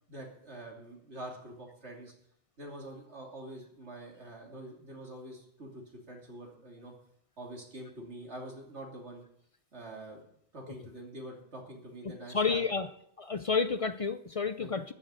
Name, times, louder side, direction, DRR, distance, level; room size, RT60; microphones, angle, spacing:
voice 1, 0.1-2.1 2.6-6.9 7.4-9.2 9.7-10.2 10.5-12.6 14.6-14.7, right 1 dB, 70° right, 0 dB, 3.2 m, -45 dB
voice 2, 12.3-12.9 13.2-14.9, left 5 dB, 45° left, 11 dB, 0.5 m, -30 dB
13.5 x 6.6 x 8.9 m, 0.70 s
omnidirectional pair, 1.2 m